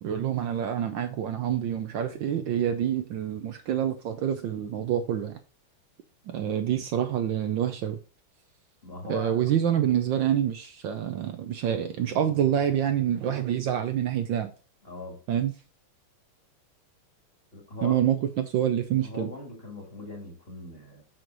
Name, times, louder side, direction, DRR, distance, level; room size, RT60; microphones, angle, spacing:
voice 1, 0.0-5.4 6.3-8.0 9.1-14.5 15.3-15.5 17.8-19.3, right 10 dB, 70° right, 1.3 m, -27 dB
voice 2, 8.8-9.4 14.8-15.2 17.5-18.0 19.0-21.0, left 2 dB, 30° left, 2.0 m, -40 dB
6.4 x 6.1 x 3.9 m
omnidirectional pair, 2.4 m